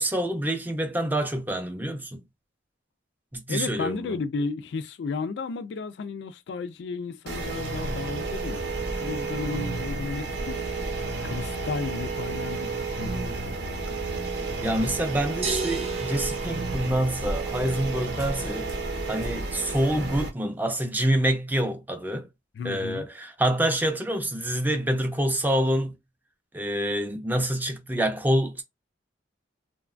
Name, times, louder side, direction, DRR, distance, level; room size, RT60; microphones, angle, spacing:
voice 1, 0.0-2.2 3.3-4.1 14.6-18.7 19.1-22.3 22.6-25.9 26.5-28.6, right 1 dB, 10° right, 0.4 m, -26 dB
voice 2, 3.5-10.9 11.2-14.3 22.5-23.1, left 4 dB, 65° left, 0.3 m, -34 dB
sound 1, 7.3-20.3, right 3 dB, 65° right, 0.7 m, -31 dB
sound 2, 15.4-17.5, right 3 dB, 35° right, 0.8 m, -35 dB
2.8 x 2.2 x 2.4 m
head